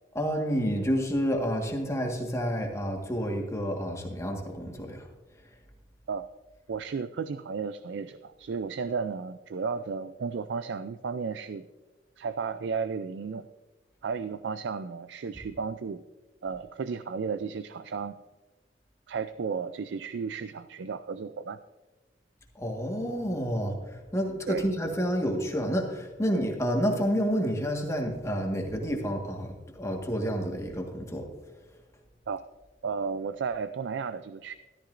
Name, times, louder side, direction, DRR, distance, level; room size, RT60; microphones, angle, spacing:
voice 1, 0.1-5.0 22.5-31.2, equal, 15° left, 2 dB, 1.5 m, -29 dB
voice 2, 6.7-11.6 12.2-13.5 14.0-16.0 16.4-18.2 19.1-21.6 24.5-24.6 32.3-32.4 32.8-34.6, right 5 dB, 75° right, 12 dB, 0.4 m, -33 dB
14.0 x 13.0 x 2.6 m, 1.2 s
head